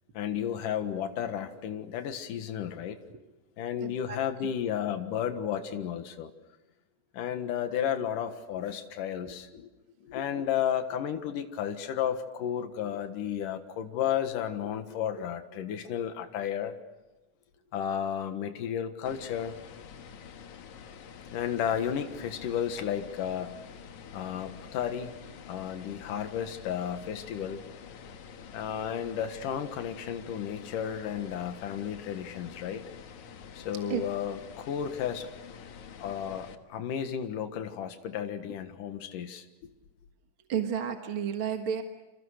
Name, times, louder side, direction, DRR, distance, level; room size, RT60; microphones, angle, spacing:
voice 1, 0.1-3.0 3.6-6.3 7.1-9.7 10.0-16.7 17.7-19.5 21.3-23.5 24.1-25.1 25.5-27.6 28.5-32.8 33.5-35.3 36.0-39.7, left 9 dB, 85° left, 8 dB, 3.2 m, -33 dB
voice 2, 3.8-4.2 33.9-34.0 40.5-41.8, right 8 dB, 50° right, 5 dB, 2.0 m, -31 dB
sound 1, 19.1-36.6, left 7 dB, 70° left, 2.8 m, -47 dB
29.0 x 26.5 x 6.6 m, 1.1 s
omnidirectional pair, 3.7 m